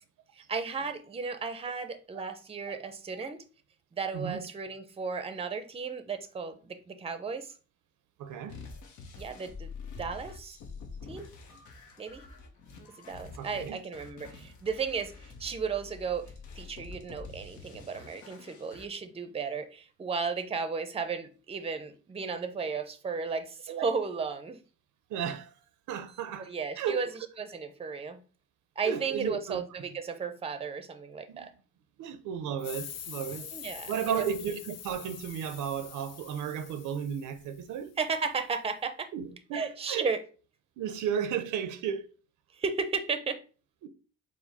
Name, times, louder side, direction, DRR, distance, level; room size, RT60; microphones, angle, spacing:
voice 1, 0.3-3.4 3.9-7.5 9.2-9.7 10.0-10.6 11.1-11.3 12.0-12.2 13.0-24.6 26.4-27.1 27.4-28.2 28.8-31.5 33.5-34.3 38.0-39.1 39.5-40.2 42.5-43.4, right 5 dB, 20° right, 0.5 m, -34 dB
voice 2, 8.2-8.6 13.4-13.8 23.7-23.9 25.1-25.5 25.9-27.1 28.9-29.6 31.3-31.5 32.0-38.0 39.1-40.1 40.8-42.1 43.8-43.9, right 8 dB, 80° right, 0.5 m, -34 dB
sound 1, 8.5-18.9, left 4 dB, 80° left, 0.9 m, -47 dB
sound 2, 32.6-37.9, left 9 dB, 55° left, 0.5 m, -45 dB
4.8 x 2.0 x 4.0 m
cardioid pair, 90°, 30 cm